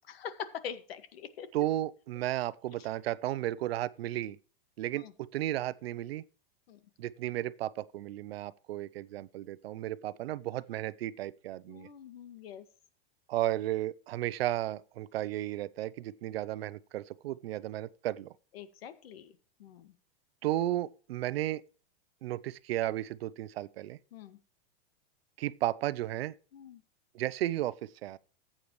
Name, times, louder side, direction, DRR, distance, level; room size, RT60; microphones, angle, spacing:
voice 1, 0.1-1.5 5.0-5.1 6.7-6.8 11.7-12.6 18.5-19.3 19.6-19.9 24.1-24.4 26.5-26.8, left 8 dB, 85° left, 1.9 m, -43 dB
voice 2, 1.5-4.4 4.8-6.2 7.0-11.9 13.3-18.3 20.4-21.6 22.2-24.0 25.4-26.3 27.1-28.2, right 14 dB, 85° right, 0.7 m, -34 dB
14.5 x 8.7 x 3.1 m
supercardioid pair, 150°, 29 cm